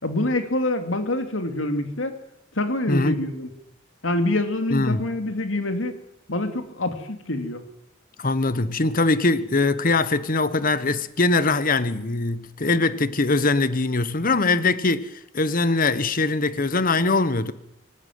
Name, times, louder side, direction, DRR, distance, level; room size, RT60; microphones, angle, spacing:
voice 1, 0.0-2.1 2.5-3.5 4.0-6.0 6.3-7.6, left 1 dB, 80° left, 2.7 m, -26 dB
voice 2, 2.9-3.2 4.7-5.1 8.2-17.5, left 3 dB, 45° left, 1.2 m, -22 dB
25.0 x 12.0 x 9.4 m
head